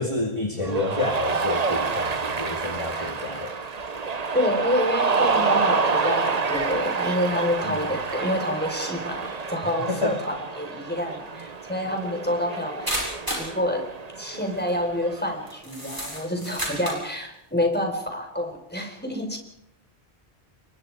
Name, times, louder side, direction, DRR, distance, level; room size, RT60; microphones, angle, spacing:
voice 1, 0.0-3.5 7.6-7.9 9.9-10.2, left 2 dB, 30° left, 2 dB, 2.5 m, -29 dB
Cheering, 0.6-15.5, right 4 dB, 40° right, 1.1 m, -28 dB
voice 2, 4.3-13.9 14.2-19.4, left 1 dB, 10° left, 4 dB, 4.5 m, -28 dB
sound 1, 11.4-11.5 12.9-13.5 14.5-14.7 15.5-17.1, equal, 20° right, 7.3 m, -31 dB
29.5 x 23.0 x 4.9 m, 0.81 s
omnidirectional pair, 1.1 m